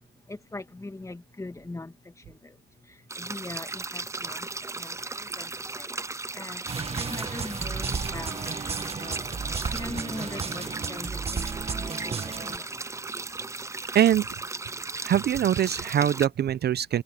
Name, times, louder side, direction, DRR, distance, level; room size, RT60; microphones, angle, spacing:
voice 1, 0.3-5.9 6.3-8.6 9.0-9.4 9.7-12.8, left 2 dB, 15° left, 2.3 m, -42 dB
sound 1, 3.1-16.3, right 3 dB, 15° right, 0.6 m, -36 dB
sound 2, 6.7-12.6, right 5 dB, 30° right, 1.5 m, -33 dB
voice 2, 13.9-14.3 15.0-17.0, right 10 dB, 55° right, 0.7 m, -23 dB
cardioid pair, 90°, 20 cm